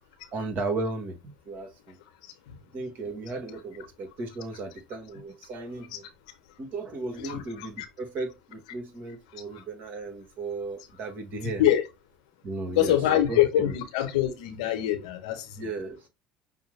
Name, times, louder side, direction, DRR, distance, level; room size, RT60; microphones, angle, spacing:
voice 1, 0.3-2.0 2.7-6.1 6.6-11.6 12.4-13.7 15.6-16.1, right 3 dB, 55° right, 1.4 m, -35 dB
voice 2, 12.8-15.5, left 12 dB, 80° left, 0.9 m, -24 dB
5.5 x 2.1 x 3.2 m
hypercardioid pair, 70°, 4 cm